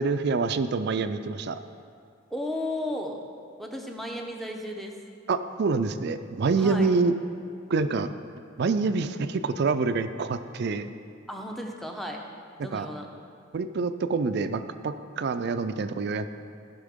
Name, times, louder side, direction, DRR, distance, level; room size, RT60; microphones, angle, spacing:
voice 1, 0.0-1.6 5.3-7.1 7.7-8.1 8.6-10.9 12.7-12.9 13.5-16.3, right 4 dB, 55° right, 10 dB, 0.4 m, -26 dB
voice 2, 2.3-3.2 3.6-5.0 6.6-6.9 11.3-12.2 12.6-13.1, left 1 dB, ahead, 1 dB, 0.7 m, -34 dB
15.0 x 6.0 x 3.6 m, 2.3 s
head